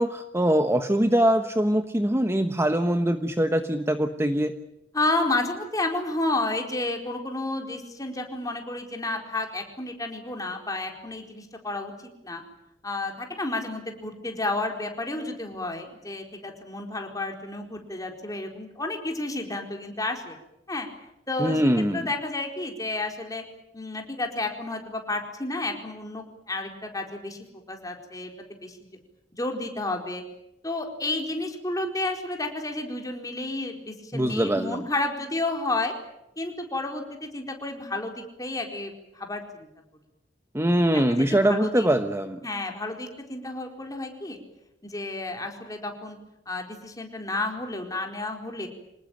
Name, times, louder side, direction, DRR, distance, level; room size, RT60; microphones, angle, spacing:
voice 1, 0.0-4.5 21.4-22.1 34.1-34.9 40.5-42.4, right 1 dB, 15° right, 7 dB, 1.1 m, -23 dB
voice 2, 4.9-12.4 12.8-20.4 20.7-20.9 21.3-23.4 23.7-27.4 27.7-28.9 29.4-30.2 30.6-35.9 36.4-39.7 41.2-41.9 42.4-44.4 44.8-46.2 46.5-48.7, left 2 dB, 20° left, 3 dB, 4.4 m, -31 dB
26.5 x 19.5 x 9.1 m, 0.86 s
head